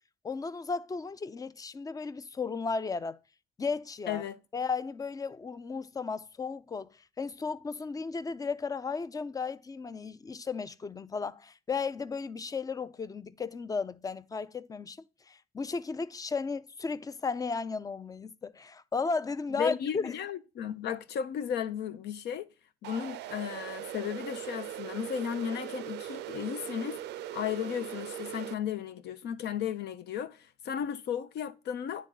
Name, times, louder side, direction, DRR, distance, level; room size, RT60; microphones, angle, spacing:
voice 1, 0.2-3.2 3.6-4.2 4.5-15.0 15.3-20.1, left 4 dB, 20° left, 0.4 m, -35 dB
voice 2, 4.1-4.4 19.6-22.5 22.8-27.0 27.3-32.1, left 8 dB, 75° left, 0.7 m, -35 dB
sound 1, 22.8-28.5, right 13 dB, 80° right, 0.4 m, -40 dB
9.7 x 3.7 x 3.8 m
cardioid pair, 100°, 17 cm